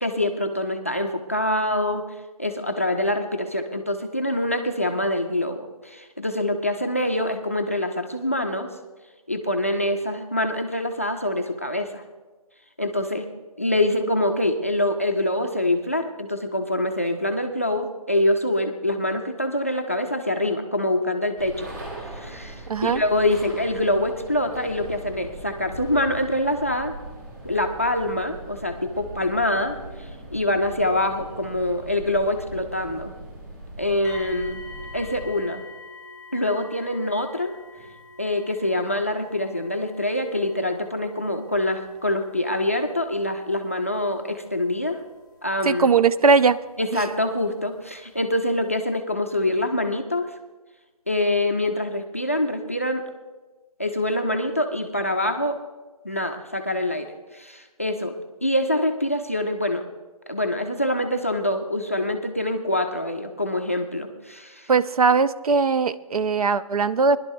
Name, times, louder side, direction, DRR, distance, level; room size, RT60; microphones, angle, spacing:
voice 1, 0.0-2.0 2.4-8.7 9.3-12.0 12.8-13.3 13.6-21.7 22.1-26.9 27.4-33.1 33.8-34.6 34.9-35.6 36.3-37.5 38.2-45.0 45.4-45.9 46.8-50.3 51.1-53.0 53.8-55.6 56.0-57.1 57.3-58.1 58.4-59.8 60.3-64.7, left 1 dB, 20° left, 6 dB, 0.4 m, -25 dB
sound 1, 21.4-35.4, right 1 dB, 30° right, 2.8 m, -40 dB
voice 2, 22.7-23.0 45.6-46.6 46.9-47.0 64.7-67.2, right 5 dB, 65° right, 14 dB, 0.5 m, -19 dB
sound 2, 34.0-46.9 47.8-47.9 48.4-48.5, left 3 dB, 5° right, 1.0 m, -46 dB
20.5 x 11.0 x 2.6 m, 1.2 s
hypercardioid pair, 175°, 20 cm